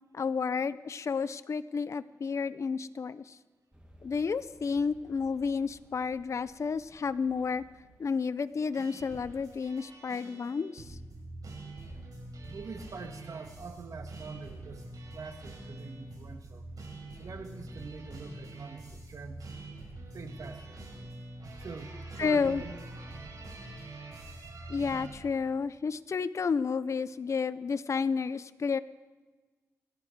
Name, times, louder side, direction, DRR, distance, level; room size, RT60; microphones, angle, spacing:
voice 1, 0.1-3.4 4.0-7.6 8.0-11.0 22.2-22.6 24.7-28.8, left 5 dB, 50° left, 15 dB, 0.5 m, -31 dB
sound 1, 3.7-8.6, right 1 dB, 15° right, 2.1 m, -59 dB
sound 2, 8.7-25.1, right 2 dB, 80° right, 6.9 m, -45 dB
voice 2, 12.5-14.8 15.1-16.6 17.2-19.5 20.1-20.9 21.6-22.7 23.3-23.5, right 4 dB, 65° right, 6 dB, 1.8 m, -44 dB
27.5 x 11.0 x 4.6 m, 1.3 s
cardioid pair, 60°, 6 cm